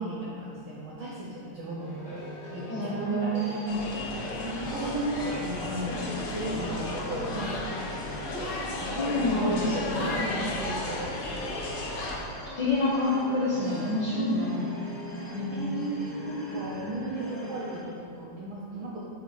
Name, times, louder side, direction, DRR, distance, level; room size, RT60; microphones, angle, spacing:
voice 1, 0.0-2.2 2.5-3.6 4.4-7.7 8.3-11.2 15.1-19.1, right 1 dB, 70° right, -5 dB, 1.2 m, -35 dB
sound 1, 1.8-17.8, equal, 25° left, 0.9 m, -42 dB
voice 2, 2.7-3.8 9.0-10.3 12.6-14.7 15.3-15.9, left 1 dB, 60° left, -8 dB, 1.1 m, -28 dB
sound 2, 3.7-12.2, left 2 dB, 80° left, 0.9 m, -34 dB
8.3 x 6.4 x 4.1 m, 2.6 s
omnidirectional pair, 3.4 m